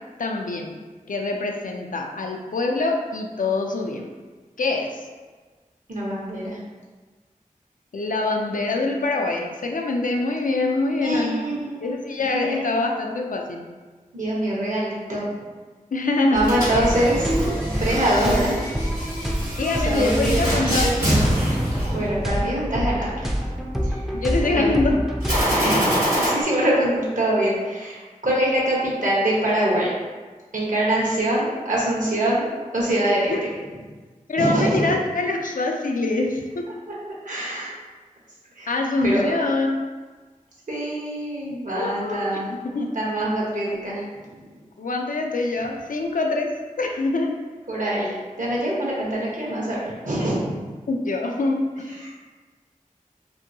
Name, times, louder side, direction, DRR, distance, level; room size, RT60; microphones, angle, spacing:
voice 1, 0.2-0.8 1.1-4.1 4.6-5.0 7.9-13.7 15.9-16.4 19.6-20.9 24.1-25.0 33.0-33.4 34.3-36.7 38.7-39.9 41.7-42.9 44.8-46.5 46.8-47.4 50.9-52.0, left 2 dB, 70° left, 2 dB, 0.4 m, -24 dB
voice 2, 5.9-6.6 11.0-12.7 14.1-15.3 16.3-17.3 17.8-18.6 19.8-21.5 21.9-23.2 23.8-24.0 24.5-24.8 25.5-29.9 30.5-33.3 34.4-34.9 37.2-37.7 38.6-38.7 39.0-39.3 40.7-42.5 42.9-44.3 47.7-50.5 52.0-52.1, right 1 dB, 65° right, -6 dB, 0.9 m, -24 dB
sound 1, 16.3-25.6, equal, ahead, 0.4 m, -27 dB
sound 2, 16.4-22.5 25.2-26.3, equal, 85° right, 1.3 m, -25 dB
2.7 x 2.6 x 2.6 m, 1.4 s
wide cardioid pair, 40°, 14 cm